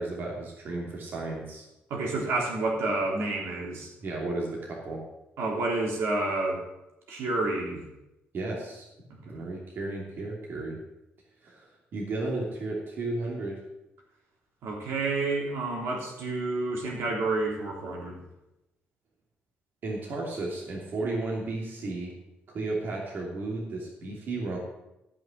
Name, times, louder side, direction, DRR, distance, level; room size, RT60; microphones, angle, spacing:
voice 1, 0.0-1.6 4.0-5.0 8.3-8.8 9.2-10.8 11.4-13.6 19.8-22.1 22.5-24.6, right 2 dB, 55° right, -2 dB, 2.9 m, -33 dB
voice 2, 1.9-3.9 5.4-6.6 7.1-7.8 9.2-9.4 14.6-18.2, right 2 dB, 75° right, -1 dB, 3.3 m, -29 dB
13.5 x 5.9 x 7.4 m, 0.93 s
cardioid pair, 105°, 4 cm